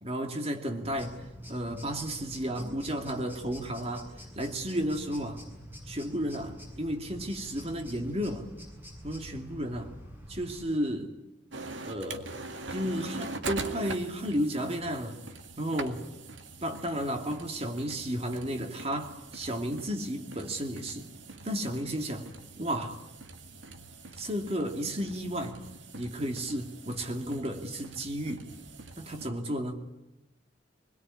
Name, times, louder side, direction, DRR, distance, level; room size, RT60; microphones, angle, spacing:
voice 1, 0.0-5.4 5.9-8.5 9.0-10.0 10.3-11.1 11.8-12.4 12.7-15.2 15.6-16.1 16.6-21.1 21.4-23.0 24.2-25.7 25.9-28.5 29.0-29.9, equal, 35° right, 4 dB, 2.6 m, -33 dB
sound 1, 0.7-10.6, equal, 10° right, 7.4 m, -47 dB
sound 2, 11.5-29.3, right 3 dB, 90° right, 2.0 m, -43 dB
24.5 x 21.0 x 9.8 m, 0.89 s
head